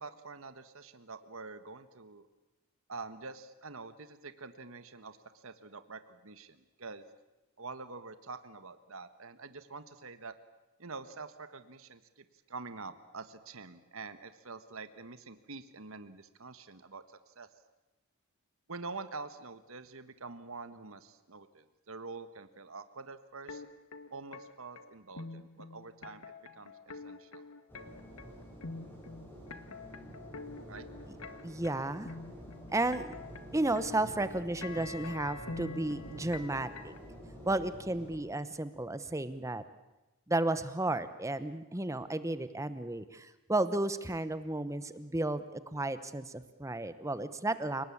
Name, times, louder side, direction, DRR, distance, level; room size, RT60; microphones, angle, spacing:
voice 1, 0.0-2.3 2.9-7.0 7.6-10.3 10.8-17.5 18.7-23.6 24.1-26.2 26.5-26.7 27.0-27.4 30.7-30.8, right 4 dB, 65° right, 11 dB, 1.4 m, -46 dB
sound 1, 23.5-37.0, left 3 dB, 70° left, 1.7 m, -46 dB
sound 2, 27.7-38.2, equal, 10° left, 6.4 m, -49 dB
voice 2, 31.4-32.1 32.7-33.1 33.5-36.9 37.5-39.6 40.3-47.8, right 2 dB, 15° right, 13 dB, 0.9 m, -33 dB
29.5 x 19.0 x 8.6 m, 1.0 s
head